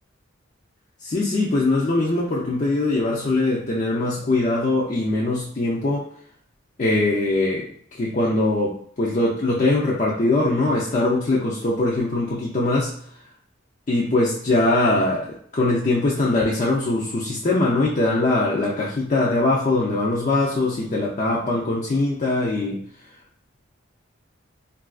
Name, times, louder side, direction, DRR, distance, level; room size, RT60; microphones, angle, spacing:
voice 1, 1.0-6.0 6.8-12.9 13.9-22.8, left 2 dB, 35° left, -5 dB, 0.4 m, -22 dB
3.7 x 2.4 x 2.3 m, 0.64 s
head